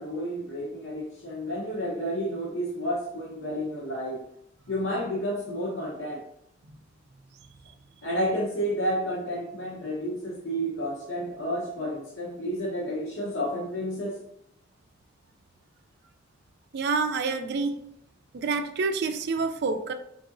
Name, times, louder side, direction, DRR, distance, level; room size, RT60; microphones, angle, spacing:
voice 1, 0.0-4.3 4.7-6.2 8.0-14.2, equal, 70° left, -4 dB, 0.8 m, -31 dB
voice 2, 16.7-17.8 18.3-19.9, right 4 dB, 55° right, 7 dB, 0.4 m, -27 dB
3.9 x 3.6 x 2.5 m, 0.74 s
head